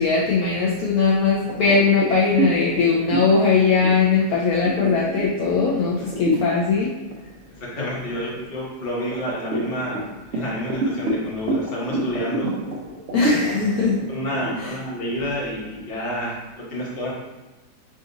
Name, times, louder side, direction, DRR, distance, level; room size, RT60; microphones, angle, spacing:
voice 1, 0.0-7.0 13.1-14.0 14.6-14.7, left 4 dB, 70° left, -4 dB, 1.0 m, -20 dB
sound 1, 1.5-6.6 7.1-7.3 7.7-8.6 9.1-15.8, right 1 dB, 65° right, 0.6 m, -27 dB
voice 2, 7.5-12.5 14.1-17.1, equal, 40° left, -5 dB, 1.1 m, -29 dB
3.9 x 2.5 x 3.8 m, 1.1 s
omnidirectional pair, 1.9 m